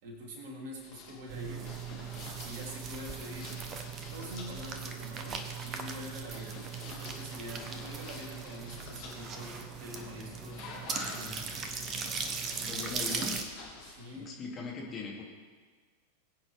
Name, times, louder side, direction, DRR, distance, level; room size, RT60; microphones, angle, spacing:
voice 1, 0.0-1.8 2.4-3.5 4.0-11.5 13.8-14.3, left 1 dB, 50° right, -2 dB, 3.5 m, -45 dB
sound 1, 0.8-14.1, left 4 dB, 45° left, 3.0 m, -49 dB
sound 2, 1.3-13.4, right 5 dB, 30° right, 1.4 m, -39 dB
voice 2, 12.6-13.4 14.2-15.2, left 4 dB, 25° left, -3 dB, 3.1 m, -40 dB
22.0 x 8.8 x 3.7 m, 1.5 s
figure-of-eight pair, 90°, 0 cm